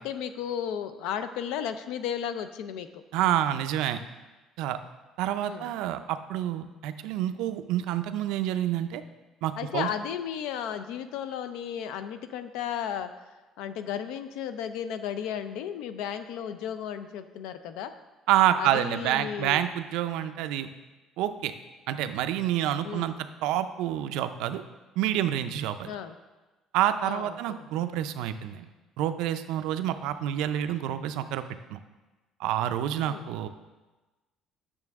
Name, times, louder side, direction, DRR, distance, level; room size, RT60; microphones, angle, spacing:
voice 1, 0.0-3.0 5.4-5.7 9.6-13.1 13.6-17.9 18.6-19.6 22.8-23.1 25.9-26.2 27.0-28.1 33.0-33.3, left 9 dB, 90° left, 10 dB, 0.5 m, -34 dB
voice 2, 3.1-4.0 4.6-4.8 5.2-9.0 9.4-9.9 18.3-20.7 21.2-21.5 21.9-23.1 23.4-24.6 25.0-25.9 26.7-28.7 29.0-31.4 31.7-31.8 32.4-33.5, right 11 dB, 80° right, 10 dB, 0.5 m, -28 dB
8.8 x 6.6 x 3.6 m, 1.2 s
cardioid pair, 180°, 0 cm